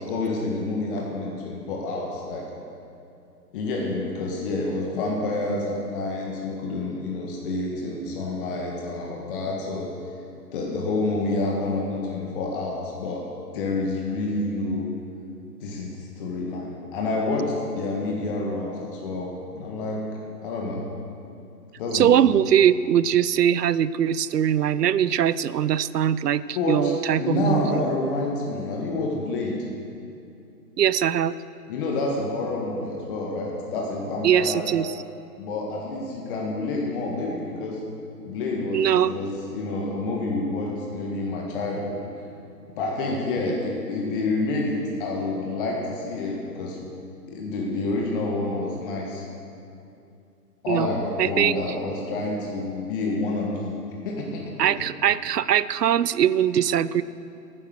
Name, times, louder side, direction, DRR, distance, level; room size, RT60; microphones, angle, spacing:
voice 1, 0.0-2.4 3.5-9.9 10.5-13.2 13.5-14.9 15.6-19.3 19.5-20.0 20.4-20.8 21.8-22.1 26.5-29.6 31.7-34.6 35.4-37.8 38.2-42.0 42.7-46.8 47.3-49.2 50.6-53.7 54.0-54.7, left 2 dB, 35° left, -1 dB, 1.6 m, -28 dB
voice 2, 21.9-27.9 30.8-31.4 34.2-34.9 38.7-39.1 50.7-50.9 51.2-51.6 54.6-57.0, right 10 dB, 75° right, 17 dB, 0.6 m, -21 dB
10.5 x 9.9 x 6.5 m, 2.6 s
figure-of-eight pair, 130°, 49 cm